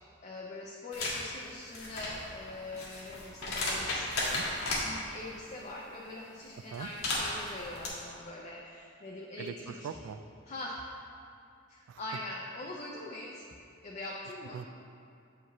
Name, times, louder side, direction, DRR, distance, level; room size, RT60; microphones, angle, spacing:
voice 1, 0.2-4.1 4.8-9.9 10.4-10.8 11.7-13.5 13.8-14.6, left 2 dB, 35° left, -3 dB, 0.5 m, -43 dB
sound 1, 0.9-1.2 1.6-4.8 6.7-7.9, left 2 dB, 80° left, 1.5 m, -34 dB
voice 2, 9.4-10.2 11.9-12.0 14.5-14.7, right 7 dB, 85° right, 13 dB, 0.3 m, -41 dB
8.0 x 5.0 x 3.0 m, 2.5 s
head